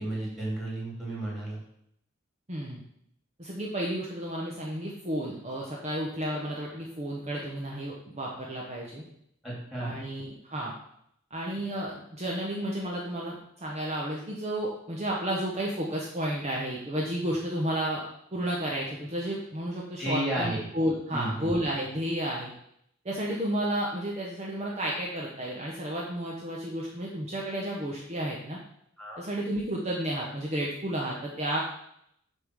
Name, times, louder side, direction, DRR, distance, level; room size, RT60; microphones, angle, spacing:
voice 1, 0.0-1.6 9.4-10.0 20.0-20.6 21.1-21.6 29.0-29.2, right 1 dB, ahead, -6 dB, 2.8 m, -32 dB
voice 2, 2.5-2.8 3.4-9.0 9.8-10.7 11.3-13.4 13.6-18.0 18.3-22.5 23.0-28.6 29.2-31.6, right 1 dB, 30° right, -3 dB, 0.9 m, -32 dB
6.8 x 3.7 x 6.1 m, 0.74 s
head